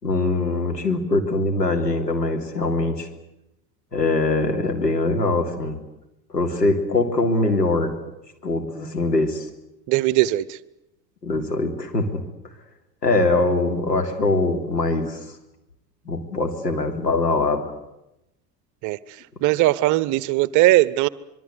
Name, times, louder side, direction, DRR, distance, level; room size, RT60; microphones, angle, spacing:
voice 1, 0.0-3.1 3.9-5.8 6.3-7.9 8.4-9.5 11.2-12.2 13.0-15.2 16.0-17.7, left 2 dB, 80° left, 4 dB, 3.4 m, -22 dB
voice 2, 9.9-10.6 18.8-19.0 19.4-21.1, right 17 dB, 40° right, 19 dB, 0.9 m, -19 dB
25.5 x 23.0 x 8.2 m, 0.88 s
figure-of-eight pair, 75°, 48 cm